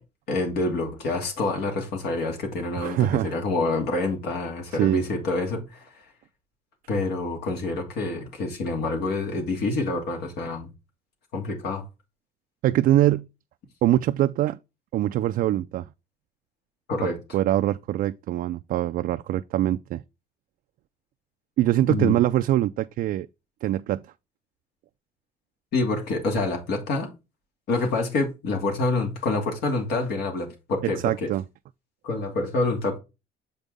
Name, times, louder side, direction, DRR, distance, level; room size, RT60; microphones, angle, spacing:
voice 1, 0.3-5.8 6.9-10.7 11.3-11.8 16.9-17.2 21.9-22.1 25.7-27.1 27.7-31.3 32.0-33.0, left 3 dB, 70° left, 2.7 m, -27 dB
voice 2, 2.8-3.3 4.7-5.0 12.6-13.3 13.8-14.6 14.9-15.9 17.3-20.0 21.6-23.3 23.6-24.1 31.0-31.4, right 13 dB, 60° right, 0.4 m, -23 dB
7.3 x 5.3 x 3.4 m
cardioid pair, 110°, 17 cm